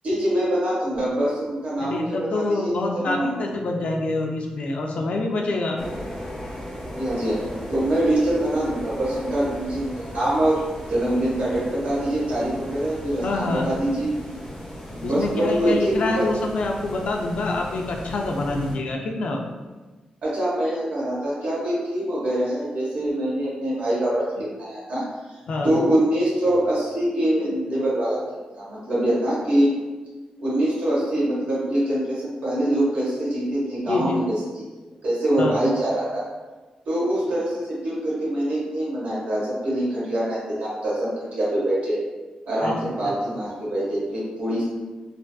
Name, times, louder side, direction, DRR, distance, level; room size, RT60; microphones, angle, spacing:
voice 1, 0.0-2.7 3.0-3.3 7.0-7.4 7.7-10.5 10.9-14.4 14.9-16.2 20.2-24.2 24.6-25.0 25.6-28.2 28.5-29.8 30.4-34.3 35.0-36.2 36.9-42.0 42.5-44.6, right 1 dB, 75° right, -7 dB, 1.3 m, -24 dB
voice 2, 1.8-5.8 13.2-13.6 15.0-19.4 25.5-25.7 33.9-34.2 35.4-35.5 42.6-42.7, left 2 dB, 60° left, 1 dB, 0.4 m, -26 dB
sound 1, 5.8-18.7, equal, 20° left, 0.9 m, -37 dB
3.3 x 2.5 x 2.3 m, 1.3 s
wide cardioid pair, 170°, 2 cm